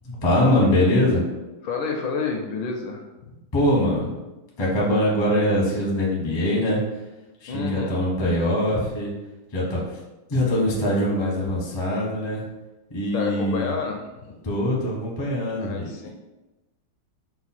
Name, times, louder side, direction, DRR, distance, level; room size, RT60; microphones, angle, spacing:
voice 1, 0.0-1.2 3.5-4.1 4.6-6.8 7.4-9.1 9.5-10.0 10.3-12.4 12.9-13.7 14.4-15.7, left 1 dB, 30° left, -4 dB, 0.5 m, -22 dB
voice 2, 1.6-3.4 7.5-8.0 13.1-14.4 15.6-16.1, left 5 dB, 75° left, 2 dB, 1.2 m, -30 dB
4.8 x 2.3 x 4.1 m, 1.0 s
omnidirectional pair, 2.2 m